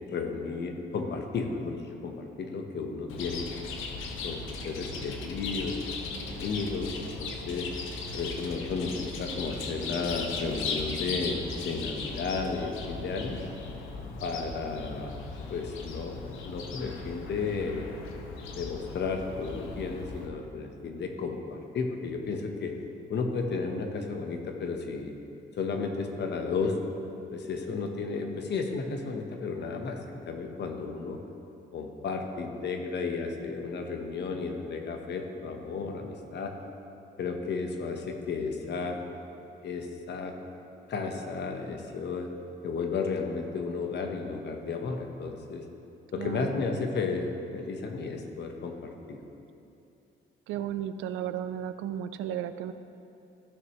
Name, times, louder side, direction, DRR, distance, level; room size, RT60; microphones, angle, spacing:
voice 1, 0.0-3.5 4.2-6.0 6.3-7.7 8.1-13.4 14.2-15.1 15.5-16.2 16.4-17.9 18.6-22.8 23.1-25.1 25.6-26.8 27.3-31.2 31.7-36.6 37.2-39.0 39.6-40.3 40.9-42.3 42.6-45.7 46.1-49.2, left 4 dB, 60° left, 4 dB, 1.1 m, -33 dB
Chirp tweet, 3.1-20.3, left 4 dB, 90° left, 0.9 m, -38 dB
voice 2, 46.2-46.6 50.5-52.7, right 10 dB, 90° right, 11 dB, 0.4 m, -34 dB
14.5 x 6.2 x 3.1 m, 2.7 s
cardioid pair, 90°, 20 cm